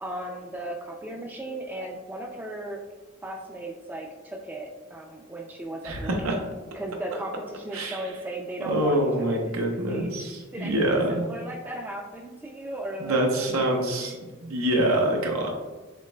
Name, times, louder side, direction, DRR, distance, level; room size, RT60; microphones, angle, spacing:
voice 1, 0.0-2.8 3.2-6.4 6.7-9.4 9.9-10.1 10.5-14.2, right 1 dB, 10° right, 1 dB, 0.3 m, -36 dB
voice 2, 5.8-6.4 7.7-8.0 8.7-11.3 13.0-14.2 14.4-15.5, right 1 dB, 90° right, 1 dB, 0.7 m, -25 dB
6.6 x 3.2 x 2.2 m, 1.3 s
head